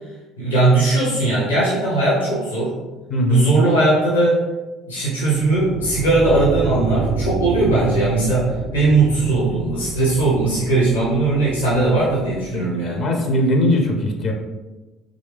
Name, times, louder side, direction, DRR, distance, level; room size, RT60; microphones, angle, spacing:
voice 1, 0.4-2.7 3.3-4.4 4.9-13.1, right 2 dB, 80° left, -6 dB, 0.9 m, -19 dB
voice 2, 3.1-3.5 12.5-14.3, left 1 dB, 45° left, 2 dB, 0.5 m, -20 dB
sound 1, 5.5-12.6, right 3 dB, 50° right, 0.4 m, -28 dB
3.0 x 2.6 x 3.2 m, 1.2 s
figure-of-eight pair, 55°, 0 cm